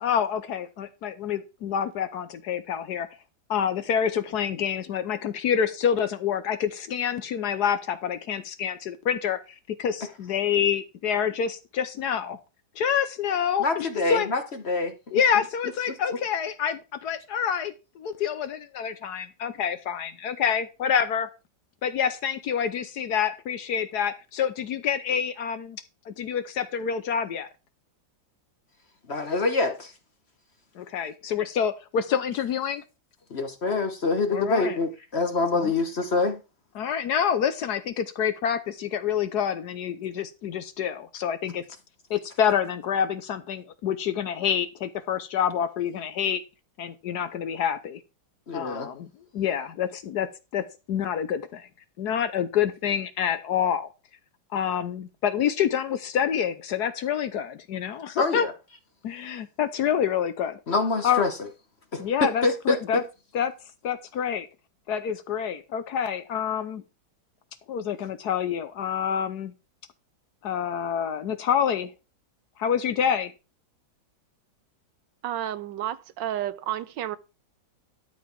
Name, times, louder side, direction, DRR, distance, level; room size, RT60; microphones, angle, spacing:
voice 1, 0.0-3.1 3.5-9.4 9.7-12.4 12.8-14.3 15.1-21.3 21.8-27.5 30.7-32.8 34.3-34.8 35.5-35.7 36.7-41.6 42.1-46.4 46.8-48.0 48.5-51.7 52.0-53.9 54.5-58.5 59.0-60.6 61.0-61.3 62.0-63.0 63.3-63.5 63.8-64.5 64.9-66.8 67.7-69.5 70.4-71.9 72.6-73.3, left 8 dB, 65° left, 1.2 m, -27 dB
voice 2, 13.6-14.9 29.1-29.9 33.3-36.4 48.5-48.9 58.2-58.5 60.7-61.3 61.9-62.8, left 3 dB, 45° left, 1.0 m, -25 dB
voice 3, 75.2-77.2, right 12 dB, 75° right, 1.3 m, -31 dB
12.5 x 5.4 x 4.6 m
omnidirectional pair, 2.1 m